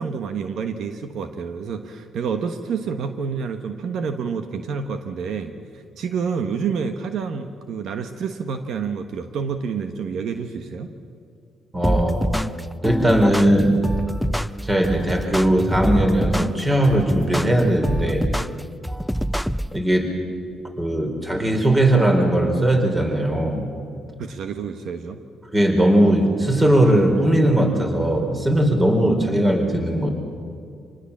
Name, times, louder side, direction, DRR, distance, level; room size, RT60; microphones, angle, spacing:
voice 1, 0.0-10.9 24.2-25.2, right 6 dB, 70° right, 7 dB, 1.3 m, -28 dB
voice 2, 11.7-12.3 12.8-13.7 14.6-18.3 19.7-20.1 20.8-23.6 25.5-30.1, right 1 dB, 20° right, 3 dB, 4.4 m, -19 dB
sound 1, 11.8-19.8, equal, ahead, 0.5 m, -25 dB
26.5 x 19.5 x 7.4 m, 2.5 s
cardioid pair, 90°, 0 cm